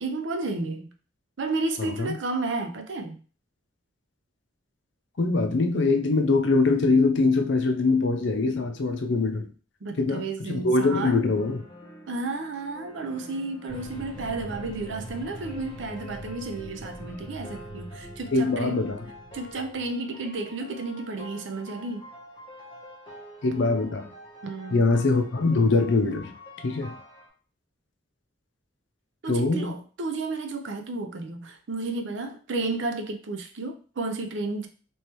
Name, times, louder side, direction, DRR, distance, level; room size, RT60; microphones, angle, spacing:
voice 1, 0.0-0.9 1.4-3.2 9.8-11.2 12.1-18.8 19.3-22.0 24.4-24.8 29.2-34.7, right 3 dB, 70° right, 6 dB, 0.6 m, -32 dB
voice 2, 1.8-2.2 5.2-9.5 10.0-11.6 18.3-19.0 23.4-24.1 24.7-26.4 26.6-26.9 29.3-29.7, left 3 dB, 60° left, 6 dB, 0.5 m, -23 dB
sound 1, 11.3-27.3, left 1 dB, 25° left, 0.9 m, -46 dB
sound 2, 13.7-19.9, right 1 dB, 5° left, 1.6 m, -43 dB
3.2 x 3.0 x 2.9 m, 0.38 s
head